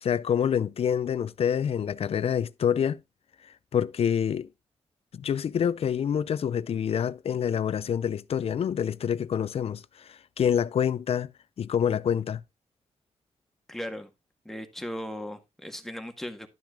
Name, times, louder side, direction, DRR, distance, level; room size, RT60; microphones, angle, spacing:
voice 1, 0.0-3.0 3.4-4.5 5.1-11.3 11.6-12.4, left 8 dB, 60° left, 0.5 m, -27 dB
voice 2, 13.7-14.1 14.4-16.5, equal, 5° left, 1.7 m, -37 dB
12.0 x 6.0 x 3.7 m
cardioid pair, 100°, 11 cm